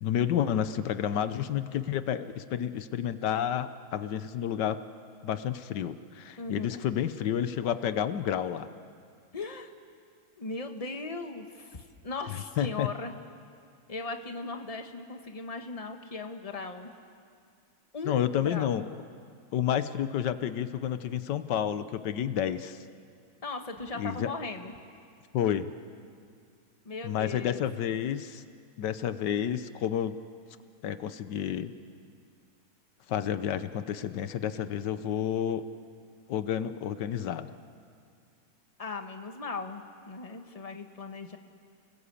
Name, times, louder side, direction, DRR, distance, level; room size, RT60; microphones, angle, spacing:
voice 1, 0.0-4.8 5.2-8.7 12.6-12.9 18.1-18.9 19.5-22.8 24.0-24.3 25.3-25.7 27.0-28.4 28.8-30.2 30.8-31.7 33.1-35.7 36.3-37.5, left 9 dB, 75° left, 12 dB, 1.4 m, -30 dB
voice 2, 6.4-6.8 9.3-9.7 10.4-13.1 13.9-16.9 17.9-18.8 23.4-24.7 26.8-27.6 38.8-41.4, left 3 dB, 20° left, 5 dB, 1.3 m, -38 dB
29.0 x 20.5 x 8.4 m, 2.3 s
omnidirectional pair, 1.9 m